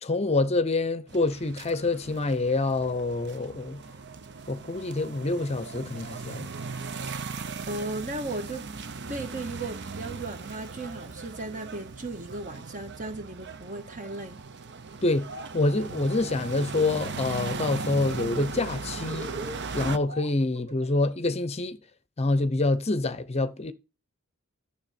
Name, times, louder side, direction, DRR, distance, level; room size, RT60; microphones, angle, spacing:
voice 1, 0.0-3.8 4.5-6.5 15.0-15.3 15.5-19.3 19.7-21.8 22.2-23.7, left 2 dB, 30° left, 0.7 m, -26 dB
sound 1, 1.1-20.0, right 4 dB, 55° right, 0.8 m, -38 dB
voice 2, 7.7-8.7 9.1-14.4, right 2 dB, 40° right, 1.5 m, -36 dB
Laughter, 15.2-15.5 15.8-17.2 17.5-17.9 18.2-21.1, right 3 dB, 85° right, 5.0 m, -41 dB
12.0 x 7.0 x 4.3 m
head